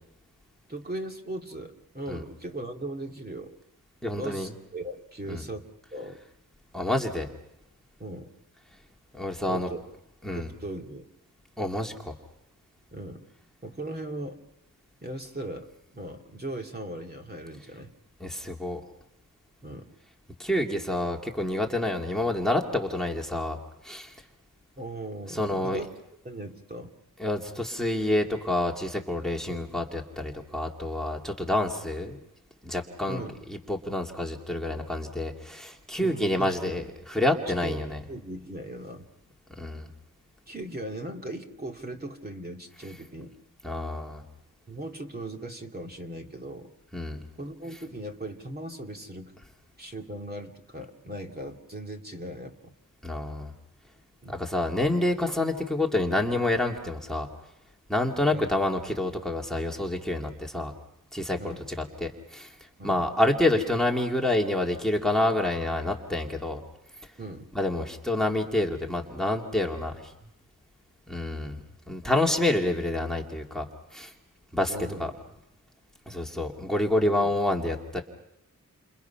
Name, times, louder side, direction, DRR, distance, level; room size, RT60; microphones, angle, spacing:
voice 1, 0.7-3.6 4.2-5.7 5.9-6.2 8.0-8.3 9.5-9.8 10.3-11.1 12.9-13.3 13.6-14.4 15.0-17.9 19.6-19.9 24.8-25.9 26.2-26.9 29.5-29.7 33.1-33.4 36.0-36.9 37.6-37.8 38.1-39.1 40.5-43.3 44.7-46.7 47.4-49.3 49.8-52.7 54.2-54.5 58.3-58.5 61.4-61.7 62.8-63.0 67.2-67.5 74.7-75.1 77.1-77.3, right 1 dB, 30° right, 2 dB, 2.4 m, -38 dB
voice 2, 4.0-4.5 5.3-5.4 6.7-7.3 9.1-9.7 10.2-10.5 11.6-12.1 18.2-18.8 20.4-23.6 23.8-24.1 25.3-25.8 27.2-32.2 32.6-33.2 33.5-38.0 39.6-39.9 43.6-44.2 46.9-47.2 53.0-53.5 54.3-57.3 57.9-60.7 61.1-61.4 62.0-62.5 62.8-66.6 67.5-70.1 71.1-74.1 74.5-75.1 76.1-78.0, left 1 dB, ahead, 2 dB, 2.3 m, -28 dB
30.0 x 28.0 x 5.8 m, 0.87 s
wide cardioid pair, 145°, 33 cm